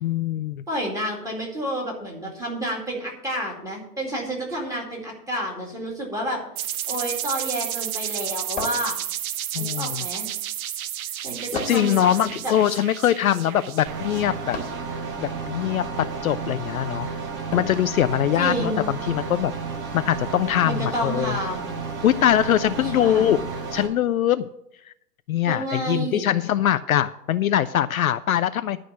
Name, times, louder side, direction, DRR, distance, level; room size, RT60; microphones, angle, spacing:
voice 1, 0.0-0.6 9.5-10.0 11.5-14.6 15.2-17.1 17.5-19.5 19.9-21.4 22.0-23.4 23.7-24.5 25.3-28.8, left 11 dB, 60° left, 12 dB, 0.5 m, -22 dB
voice 2, 0.7-6.4 6.9-9.0 9.6-10.3 11.2-12.5 18.4-18.9 20.6-21.7 22.8-23.3 25.5-26.2, right 1 dB, 5° right, -2 dB, 2.3 m, -30 dB
sound 1, 6.6-15.1, right 11 dB, 60° right, 0.6 m, -32 dB
sound 2, 8.6-9.4 11.5-12.0 14.5-14.9 17.5-17.9, left 3 dB, 15° left, 1.8 m, -34 dB
sound 3, 13.9-23.9, right 4 dB, 30° right, 4.1 m, -32 dB
11.5 x 5.0 x 8.1 m, 0.78 s
hypercardioid pair, 130°, 49 cm